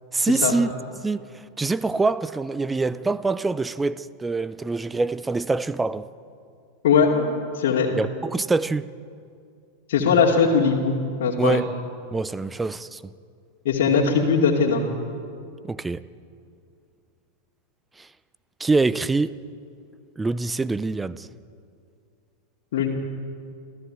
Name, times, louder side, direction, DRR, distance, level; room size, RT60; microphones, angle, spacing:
voice 1, 0.1-0.7 1.0-1.3 1.6-6.1 8.0-8.9 11.4-11.7 12.1-13.0 15.6-16.0 18.0-18.1 18.6-19.3 20.2-21.3, right 3 dB, 10° right, 0.7 m, -24 dB
voice 2, 6.8-7.9 9.9-11.6 13.6-14.8 22.7-22.9, left 5 dB, 55° left, 2.6 m, -20 dB
27.0 x 15.5 x 8.9 m
figure-of-eight pair, 90°, 0 cm